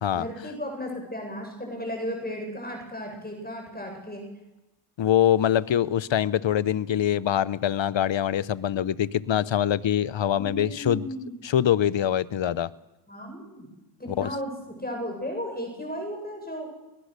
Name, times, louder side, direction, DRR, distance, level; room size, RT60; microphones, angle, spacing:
voice 1, 0.1-4.3 10.3-11.4 13.1-13.7 14.0-16.7, equal, 20° left, 2 dB, 7.7 m, -35 dB
voice 2, 5.0-11.1 11.4-12.7 14.2-14.3, left 10 dB, 65° left, 18 dB, 0.9 m, -24 dB
23.5 x 20.0 x 6.7 m, 0.99 s
cardioid pair, 45°, 49 cm